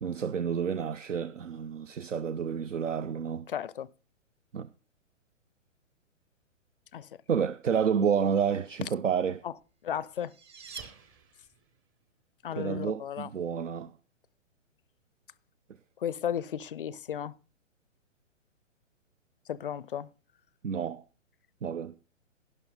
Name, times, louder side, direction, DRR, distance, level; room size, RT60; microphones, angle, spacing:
voice 1, 0.0-3.5 4.5-4.7 7.3-9.4 12.5-13.9 20.6-21.0 21.6-22.0, right 7 dB, 70° right, 0.6 m, -30 dB
voice 2, 3.5-3.9 6.9-7.1 9.4-9.5 9.8-10.3 12.4-13.3 16.0-17.3 19.5-20.1, left 9 dB, 45° left, 0.5 m, -34 dB
sound 1, 9.7-11.8, right 5 dB, 15° right, 0.7 m, -47 dB
12.0 x 11.0 x 3.8 m
figure-of-eight pair, 125°, 38 cm